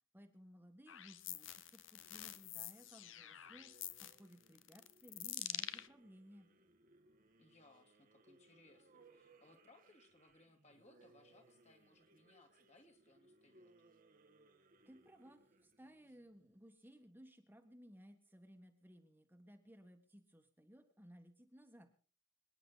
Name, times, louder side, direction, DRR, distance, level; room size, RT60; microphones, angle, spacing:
voice 1, 0.1-3.7 4.0-6.5 14.8-21.9, equal, 10° right, 5 dB, 1.5 m, -60 dB
sound 1, 0.9-5.9, left 13 dB, 70° left, 0.8 m, -47 dB
sound 2, 2.0-16.9, right 2 dB, 45° right, 1.3 m, -69 dB
voice 2, 7.4-13.7, left 2 dB, 35° left, 3 dB, 2.2 m, -67 dB
26.5 x 9.9 x 4.0 m, 0.41 s
head